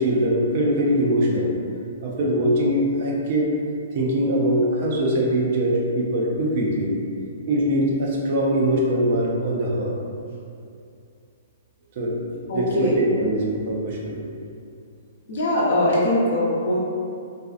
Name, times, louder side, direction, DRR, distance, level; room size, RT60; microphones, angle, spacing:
voice 1, 0.0-1.5 2.0-3.5 3.9-7.0 7.4-10.0 12.0-12.2 12.5-14.2, right 1 dB, 50° right, -2 dB, 0.4 m, -22 dB
voice 2, 12.5-13.0 15.3-16.8, left 1 dB, 55° left, -6 dB, 0.7 m, -21 dB
2.5 x 2.3 x 2.4 m, 2.5 s
figure-of-eight pair, 115°, 0 cm